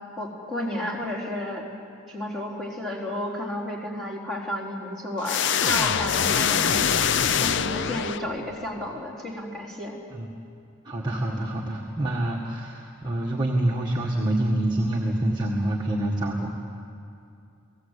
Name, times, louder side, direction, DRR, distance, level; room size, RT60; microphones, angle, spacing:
voice 1, 0.2-1.7 2.1-10.0, left 1 dB, ahead, -5 dB, 4.1 m, -32 dB
sound 1, 5.2-8.6, left 7 dB, 55° left, 0.6 m, -24 dB
voice 2, 10.8-16.6, right 1 dB, 20° right, -3 dB, 1.7 m, -26 dB
30.0 x 18.5 x 8.4 m, 2.5 s
head